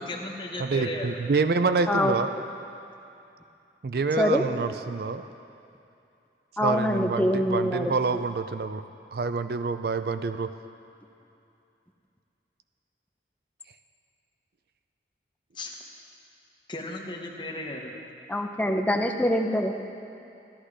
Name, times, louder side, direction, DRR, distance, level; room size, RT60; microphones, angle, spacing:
voice 1, 0.0-1.2 15.5-15.8 16.7-17.9, left 2 dB, 25° left, 0 dB, 1.1 m, -35 dB
voice 2, 0.6-2.3 3.8-5.2 6.6-8.8 9.1-10.5, right 4 dB, 55° right, 10 dB, 0.4 m, -27 dB
voice 3, 6.6-7.9 18.3-19.7, equal, 10° left, 3 dB, 0.6 m, -24 dB
14.0 x 12.0 x 4.9 m, 2.7 s
head